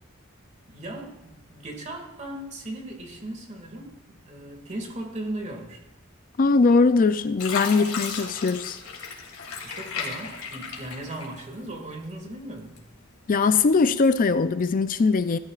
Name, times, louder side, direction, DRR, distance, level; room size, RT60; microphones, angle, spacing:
voice 1, 0.7-5.8 9.6-12.8, right 1 dB, 35° right, 2.2 m, -37 dB
voice 2, 6.4-8.8 13.3-15.4, left 4 dB, 40° left, 0.4 m, -21 dB
Fill (with liquid), 6.6-7.0 7.4-11.8 12.2-13.0 13.6-13.7, left 5 dB, 90° left, 2.8 m, -35 dB
17.0 x 13.5 x 2.5 m
head